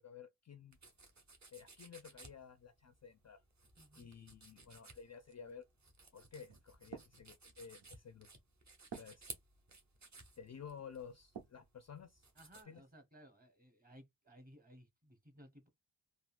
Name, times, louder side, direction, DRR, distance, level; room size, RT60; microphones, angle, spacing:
voice 1, 0.0-0.8 1.5-3.4 4.0-5.7 6.1-8.3 9.0-9.3 10.4-12.3 12.7-12.8, left 7 dB, 40° left, 0.4 m, -53 dB
sound 1, 0.7-12.6, right 3 dB, 40° right, 0.9 m, -57 dB
voice 2, 3.8-4.1 12.3-15.7, equal, 20° right, 1.1 m, -60 dB
sound 2, 5.2-11.7 12.2-12.9, right 6 dB, 80° right, 0.9 m, -56 dB
3.6 x 2.1 x 2.4 m
wide cardioid pair, 80°, 45 cm